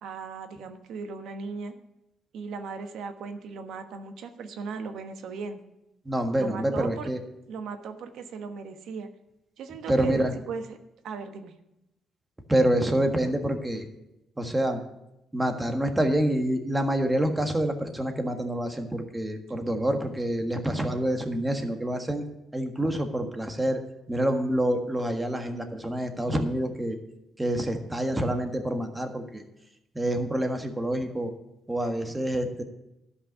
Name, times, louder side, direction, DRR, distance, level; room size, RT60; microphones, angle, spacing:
voice 1, 0.0-1.7 2.3-5.6 6.4-7.1 7.5-9.1 9.6-10.8 11.0-11.5, right 5 dB, 80° right, 7 dB, 1.2 m, -37 dB
voice 2, 6.0-7.2 9.9-10.3 12.5-13.9 14.4-14.8 15.3-22.2 22.5-23.8 24.1-27.0 27.4-29.4 29.9-31.3 31.7-32.6, right 1 dB, 15° right, 5 dB, 1.5 m, -27 dB
12.5 x 5.6 x 7.5 m, 0.89 s
cardioid pair, 90°, 0 cm